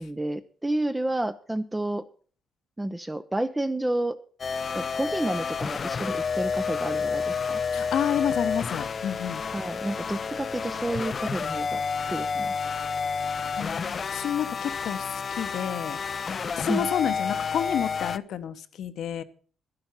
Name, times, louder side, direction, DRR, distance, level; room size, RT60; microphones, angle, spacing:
voice 1, 0.0-2.0 2.8-4.2 4.7-7.6 9.5-11.8 12.1-12.5 16.7-16.9, right 1 dB, 10° right, 9 dB, 0.6 m, -30 dB
sound 1, 4.4-18.2, left 5 dB, 45° left, 0.5 m, -30 dB
voice 2, 7.7-9.4 13.3-16.0 16.6-19.2, left 9 dB, 70° left, 11 dB, 1.0 m, -30 dB
11.0 x 11.0 x 5.6 m, 0.42 s
cardioid pair, 90°, 0 cm